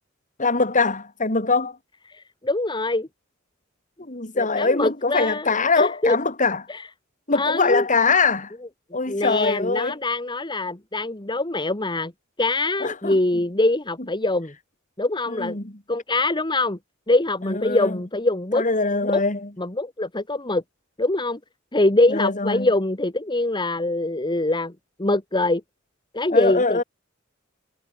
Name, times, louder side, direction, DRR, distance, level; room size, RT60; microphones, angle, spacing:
voice 1, 0.4-1.8 4.0-6.6 7.3-8.5 8.9-10.0 12.8-13.2 15.3-15.7 17.4-18.0 18.5-19.5 22.1-22.7 26.3-26.8, left 4 dB, 40° left, 3.8 m, -22 dB
voice 2, 2.1-3.1 4.3-6.2 6.7-6.9 7.3-7.9 9.1-12.1 12.4-14.5 15.0-15.6 15.9-16.8 17.1-18.6 19.0-19.2 19.6-20.6 21.0-21.4 21.7-24.7 25.0-25.6 26.1-26.8, left 2 dB, 20° left, 1.9 m, -23 dB
head